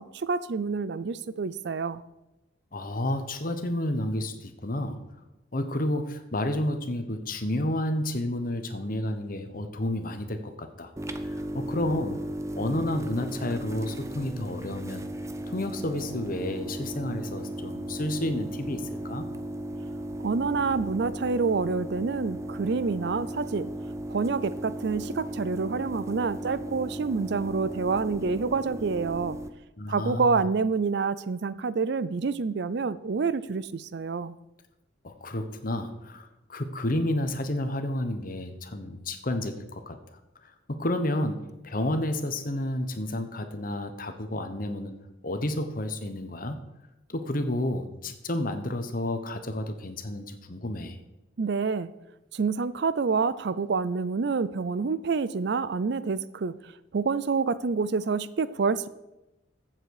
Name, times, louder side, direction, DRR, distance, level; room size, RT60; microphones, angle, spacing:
voice 1, 0.0-2.0 20.2-23.7 24.1-29.4 29.9-34.4 51.4-51.9 52.3-58.9, right 4 dB, 60° right, 16 dB, 0.5 m, -27 dB
voice 2, 2.7-5.0 5.5-10.9 11.2-12.2 12.6-15.0 15.5-19.3 29.8-30.3 35.0-40.0 40.4-44.9 45.2-46.6 47.1-51.0, left 1 dB, 45° left, 8 dB, 1.2 m, -31 dB
sound 1, 11.0-29.5, right 1 dB, 15° right, 0.6 m, -36 dB
14.5 x 7.6 x 4.9 m, 0.95 s
head